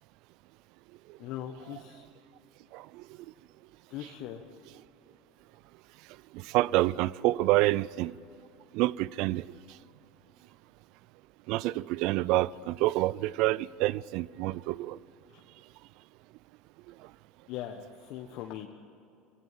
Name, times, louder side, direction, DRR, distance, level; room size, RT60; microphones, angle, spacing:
voice 1, 1.2-2.0 3.9-4.4 15.3-15.4 17.5-18.7, left 11 dB, 60° left, 1.4 m, -40 dB
voice 2, 2.7-3.0 6.3-8.1 8.7-9.4 11.5-15.0, right 17 dB, 60° right, 0.5 m, -27 dB
27.0 x 17.5 x 7.5 m
hypercardioid pair, 75°, 0 cm